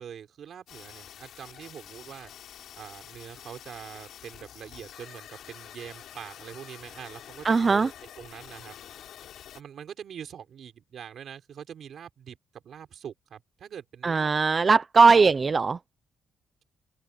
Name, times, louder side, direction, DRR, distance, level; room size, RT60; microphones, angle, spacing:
voice 1, 0.0-2.3 2.7-9.0 9.5-14.3 15.0-15.3, right 8 dB, 55° right, 4.3 m, -44 dB
sound 1, 0.7-9.6, left 10 dB, 70° left, 4.7 m, -47 dB
voice 2, 7.4-7.9 14.0-15.8, right 4 dB, 25° right, 0.6 m, -19 dB
cardioid pair, 150°, 0 cm